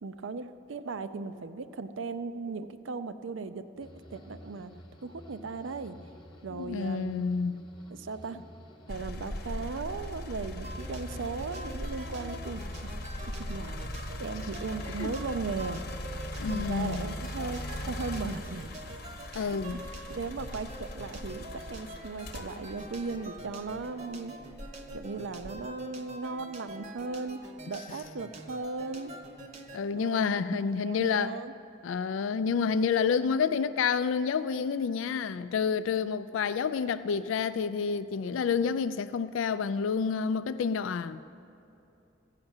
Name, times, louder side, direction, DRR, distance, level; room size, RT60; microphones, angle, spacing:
voice 1, 0.0-4.7 5.0-6.0 6.4-7.2 7.9-8.4 8.9-12.9 13.4-13.8 14.2-15.8 16.4-18.7 19.3-19.6 20.1-24.3 24.9-29.1 29.9-31.5, right 4 dB, 80° right, 0.5 m, -37 dB
sound 1, 3.8-17.1 17.4-18.1, equal, 25° left, 1.0 m, -53 dB
voice 2, 6.5-7.5 15.0-15.1 16.4-17.0 19.3-19.8 29.7-31.3 31.8-41.2, left 6 dB, 85° left, 0.3 m, -29 dB
sound 2, 8.9-23.9 24.5-25.7, left 1 dB, 50° left, 0.9 m, -39 dB
sound 3, 10.6-29.8, right 1 dB, 35° right, 0.9 m, -46 dB
15.0 x 5.8 x 8.8 m
head